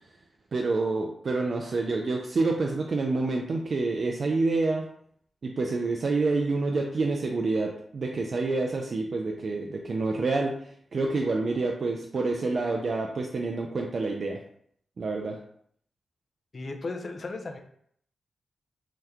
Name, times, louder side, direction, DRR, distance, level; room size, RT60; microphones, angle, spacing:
voice 1, 0.5-4.8 5.4-10.5 10.9-14.4 15.0-15.4, right 3 dB, 60° right, 1 dB, 0.3 m, -27 dB
voice 2, 16.5-17.6, left 3 dB, 55° left, 5 dB, 0.5 m, -35 dB
2.8 x 2.2 x 3.4 m, 0.65 s
cardioid pair, 50°, 0 cm